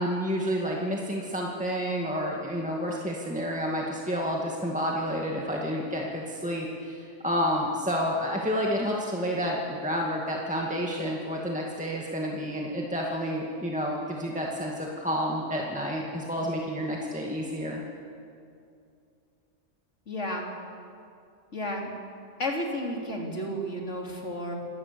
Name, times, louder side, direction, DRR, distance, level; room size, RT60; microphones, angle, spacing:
voice 1, 0.0-17.8, equal, 5° right, -2 dB, 2.1 m, -30 dB
voice 2, 20.1-20.5 21.5-21.9 22.4-24.5, left 1 dB, 70° left, 0 dB, 3.7 m, -32 dB
27.5 x 19.0 x 7.0 m, 2.5 s
omnidirectional pair, 1.3 m